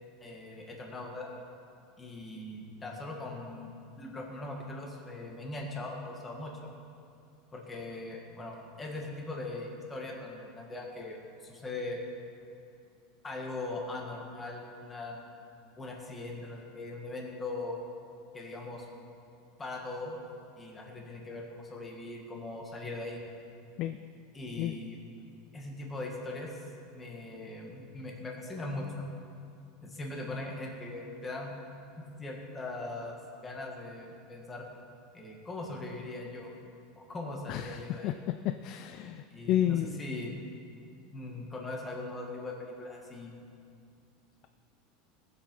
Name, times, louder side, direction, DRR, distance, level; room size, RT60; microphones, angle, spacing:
voice 1, 0.2-1.4 2.0-3.7 4.0-6.7 7.5-11.2 11.4-12.0 13.2-15.2 15.8-17.8 18.3-18.9 19.6-20.2 20.6-23.2 24.3-25.0 25.5-26.5 26.9-29.1 29.8-31.5 32.0-33.2 33.4-34.7 35.1-36.5 37.0-38.1 39.3-40.3 41.1-43.3, left 2 dB, 15° left, 0 dB, 1.8 m, -40 dB
voice 2, 37.5-38.1 38.4-40.0, left 12 dB, 40° left, 9 dB, 0.4 m, -31 dB
19.0 x 7.7 x 5.4 m, 2.5 s
supercardioid pair, 165°, 0 cm